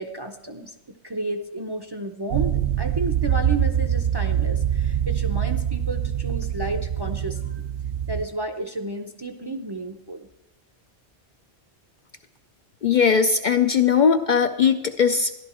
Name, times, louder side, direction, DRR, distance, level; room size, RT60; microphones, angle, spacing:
voice 1, 0.0-7.6 8.1-10.3, right 2 dB, 30° right, 6 dB, 0.6 m, -32 dB
sound 1, 2.3-8.3, right 10 dB, 65° right, 0.8 m, -24 dB
voice 2, 12.8-15.3, left 6 dB, 55° left, 7 dB, 0.6 m, -19 dB
13.5 x 11.5 x 4.3 m, 1.0 s
omnidirectional pair, 1.1 m